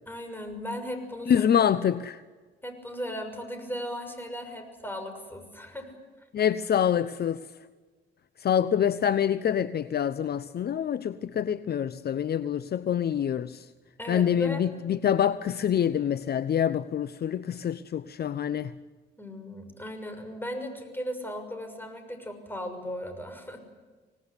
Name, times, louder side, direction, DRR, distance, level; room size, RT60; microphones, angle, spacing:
voice 1, 0.1-1.5 2.6-5.9 14.0-14.6 19.2-23.6, equal, 10° left, 6 dB, 6.4 m, -37 dB
voice 2, 1.3-2.2 6.3-7.4 8.4-13.7 14.1-18.7, left 9 dB, 55° left, 14 dB, 0.9 m, -26 dB
25.5 x 19.0 x 9.8 m, 1.4 s
cardioid pair, 90°, 20 cm